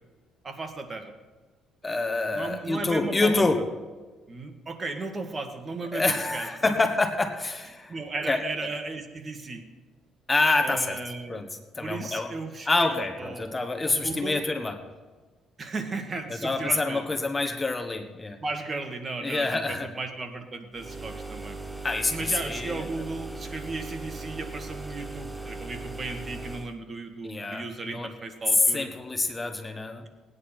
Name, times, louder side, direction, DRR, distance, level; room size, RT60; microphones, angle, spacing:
voice 1, 0.4-1.1 2.3-3.5 4.3-6.7 7.9-9.6 10.6-11.4 11.8-13.6 13.9-14.4 15.6-17.1 18.4-21.6 22.1-28.9, right 3 dB, 30° right, 5 dB, 1.8 m, -35 dB
voice 2, 1.8-3.6 5.9-8.0 8.3-8.4 10.3-11.0 11.3-12.3 12.7-14.8 16.3-18.4 19.2-19.9 21.8-22.8 27.2-28.1 28.7-30.0, left 3 dB, 20° left, 6 dB, 1.3 m, -27 dB
sound 1, 20.7-26.8, right 3 dB, 5° right, 0.9 m, -38 dB
19.5 x 9.7 x 4.4 m, 1.3 s
cardioid pair, 100°, 0 cm